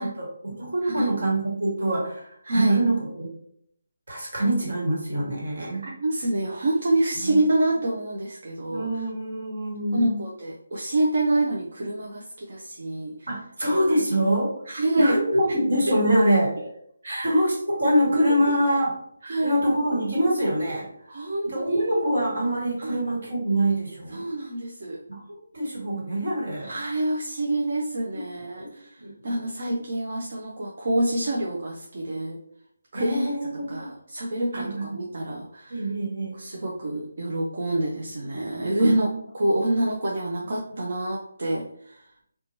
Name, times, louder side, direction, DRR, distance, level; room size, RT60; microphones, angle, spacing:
voice 1, 0.0-3.3 4.1-5.8 7.2-7.4 8.7-10.2 13.3-14.5 15.0-16.5 17.2-19.0 19.4-20.9 21.4-24.3 25.1-25.2 25.5-26.8 28.6-28.7 29.0-29.4 29.7-29.8 32.9-33.9 34.5-35.0 35.7-36.4 38.8-39.1 40.7-40.8, right 1 dB, 75° right, -2 dB, 1.3 m, -25 dB
voice 2, 2.4-2.8 5.8-9.1 9.9-13.3 14.7-15.2 15.9-16.0 16.6-16.7 17.0-17.4 19.2-19.6 21.1-22.0 22.8-23.0 24.1-25.0 26.6-32.4 32.9-33.3 33.7-35.9 36.3-42.0, right 1 dB, 50° right, -3 dB, 0.4 m, -27 dB
2.8 x 2.2 x 2.8 m, 0.69 s
hypercardioid pair, 175°, 0 cm